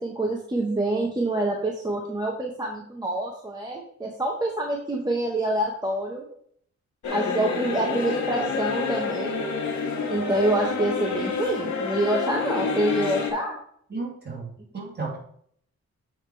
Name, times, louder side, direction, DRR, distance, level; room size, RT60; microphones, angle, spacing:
voice 1, 0.0-6.2 7.1-9.4 10.1-13.6, right 1 dB, 15° right, -1 dB, 0.9 m, -26 dB
sound 1, 7.0-13.3, left 4 dB, 85° left, 1.5 m, -28 dB
voice 2, 13.9-14.5 14.7-15.2, right 3 dB, 35° right, -2 dB, 2.4 m, -33 dB
7.3 x 4.8 x 4.5 m, 0.64 s
wide cardioid pair, 155°, 29 cm